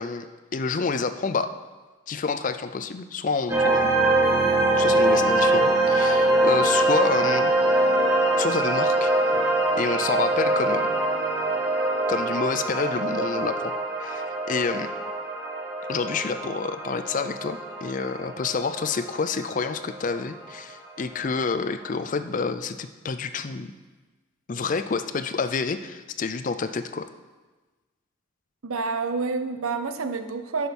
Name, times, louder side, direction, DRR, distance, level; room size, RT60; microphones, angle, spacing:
voice 1, 0.0-1.5 2.1-3.9 4.8-7.5 8.4-9.1 9.8-10.9 12.1-13.7 14.0-14.9 15.9-23.7 24.5-27.1, left 4 dB, 35° left, 11 dB, 0.4 m, -28 dB
sound 1, 3.5-20.5, right 2 dB, 10° right, 1.9 m, -23 dB
voice 2, 28.6-30.7, right 4 dB, 80° right, 9 dB, 0.7 m, -28 dB
11.0 x 6.2 x 5.3 m, 1.3 s
head